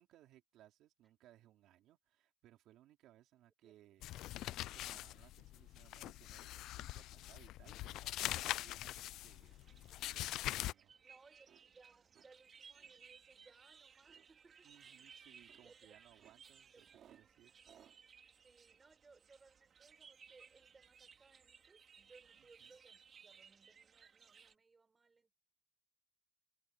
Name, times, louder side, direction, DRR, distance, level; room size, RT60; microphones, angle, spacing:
voice 1, 0.0-9.6 10.1-11.0 14.6-17.5 22.3-22.8, right 13 dB, 80° right, 3.6 m, -66 dB
sound 1, 4.0-10.7, left 15 dB, 85° left, 0.4 m, -43 dB
sound 2, 6.4-22.9, right 9 dB, 55° right, 4.0 m, -73 dB
sound 3, 9.4-24.5, right 6 dB, 40° right, 3.4 m, -62 dB
voice 2, 11.0-14.7 15.6-15.9 16.7-16.8 18.4-25.3, right 4 dB, 20° right, 5.3 m, -66 dB
cardioid pair, 140°, 0 cm